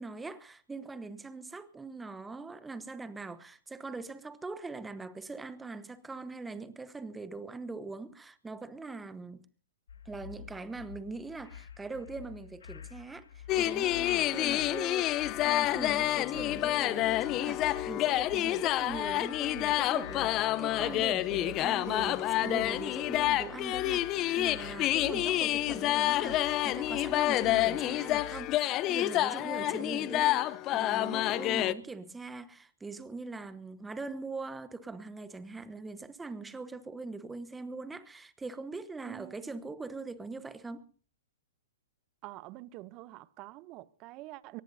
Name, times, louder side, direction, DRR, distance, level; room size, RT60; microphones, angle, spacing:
voice 1, 0.0-9.5 10.0-40.8, right 3 dB, 10° right, 1.1 m, -42 dB
sound 1, 9.9-28.5, left 8 dB, 80° left, 2.0 m, -49 dB
Carnatic varnam by Ramakrishnamurthy in Kalyani raaga, 13.5-31.7, left 15 dB, 30° left, 0.7 m, -28 dB
voice 2, 39.1-39.6 42.2-44.6, right 18 dB, 35° right, 0.8 m, -47 dB
24.0 x 19.0 x 2.7 m
hypercardioid pair, 130°, 0 cm